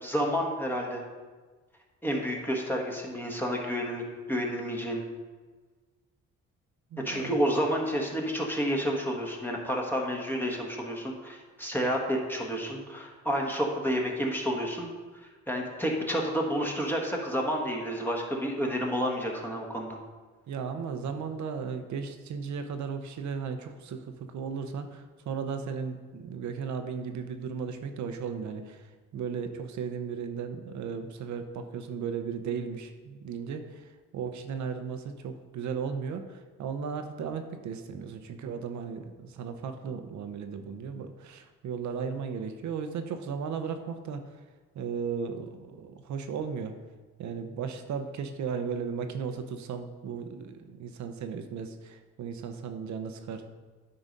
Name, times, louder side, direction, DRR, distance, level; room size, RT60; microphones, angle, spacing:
voice 1, 0.0-1.0 2.0-4.0 4.3-5.0 7.0-14.9 15.5-20.0, equal, 5° left, -1 dB, 1.4 m, -30 dB
voice 2, 6.9-7.4 20.5-28.9 29.1-44.2 44.7-46.7 47.2-53.6, right 6 dB, 70° right, 8 dB, 0.8 m, -36 dB
9.8 x 4.0 x 5.2 m, 1.4 s
cardioid pair, 90°, 30 cm